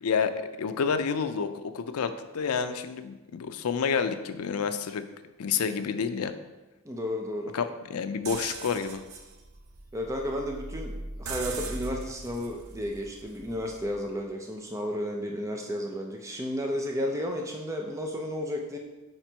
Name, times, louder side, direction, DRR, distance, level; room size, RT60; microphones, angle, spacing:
voice 1, 0.0-5.0 5.4-6.3 7.5-9.0, left 6 dB, 80° left, 10 dB, 0.4 m, -29 dB
voice 2, 6.8-7.5 9.9-18.8, equal, 15° right, 1 dB, 0.4 m, -33 dB
sound 1, 8.3-14.1, right 2 dB, 75° right, 0.6 m, -40 dB
5.0 x 4.4 x 4.5 m, 1.1 s
head